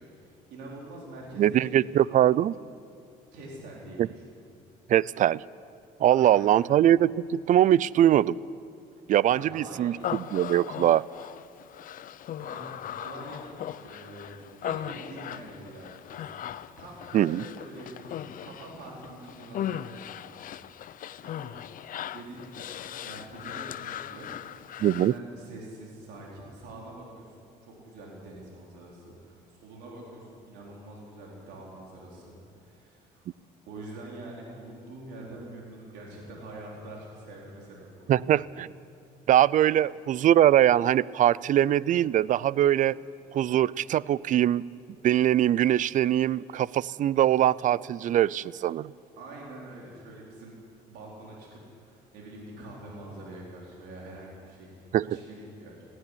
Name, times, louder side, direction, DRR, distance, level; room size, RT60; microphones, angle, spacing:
voice 1, 0.0-1.9 3.3-4.1 6.1-6.6 9.3-10.0 12.3-16.4 16.8-18.1 18.4-20.5 21.2-21.6 22.0-33.3 33.7-38.2 39.7-39.8 49.2-50.5 50.9-55.9, right 2 dB, 90° right, -3 dB, 4.3 m, -45 dB
voice 2, 1.4-2.5 4.0-4.1 4.9-5.4 6.0-8.4 9.1-11.0 17.1-17.4 24.8-25.1 38.1-38.7 39.3-43.0 43.3-44.6 45.0-48.9 54.9-55.2, right 12 dB, 50° right, 22 dB, 0.5 m, -22 dB
Human voice, 10.0-25.2, left 10 dB, 55° left, 0.7 m, -38 dB
17.5 x 16.0 x 10.0 m, 2.3 s
cardioid pair, 110°, 17 cm